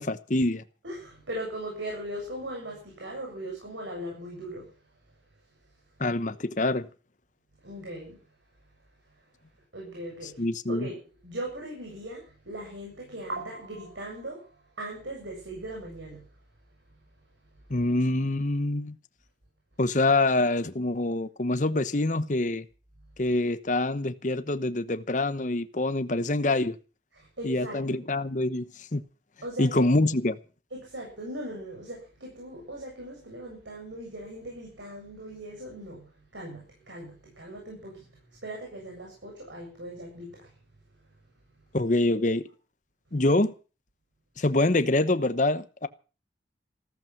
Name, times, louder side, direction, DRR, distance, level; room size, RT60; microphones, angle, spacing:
voice 1, 0.0-0.6 6.0-6.9 10.4-10.9 17.7-19.0 19.8-22.6 23.2-26.8 27.4-29.0 29.6-30.4 41.7-42.4 43.1-43.5 44.4-45.9, left 2 dB, 45° left, 1.0 m, -25 dB
voice 2, 0.8-4.7 7.6-8.2 9.7-10.4 10.7-16.2 27.1-27.8 29.4-30.1 30.7-38.0 38.4-40.5, right 1 dB, 90° right, 7.8 m, -39 dB
15.5 x 14.0 x 5.9 m
head